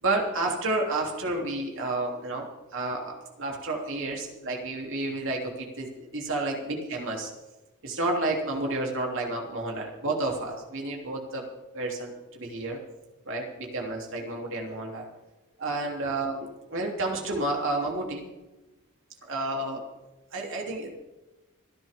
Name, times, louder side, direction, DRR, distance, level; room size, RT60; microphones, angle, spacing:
voice 1, 0.0-7.3 7.8-11.4 11.7-12.8 13.2-15.0 15.6-18.3 19.3-19.8 20.3-20.9, right 2 dB, 60° right, 0 dB, 3.3 m, -30 dB
27.0 x 10.5 x 3.8 m, 1.1 s
head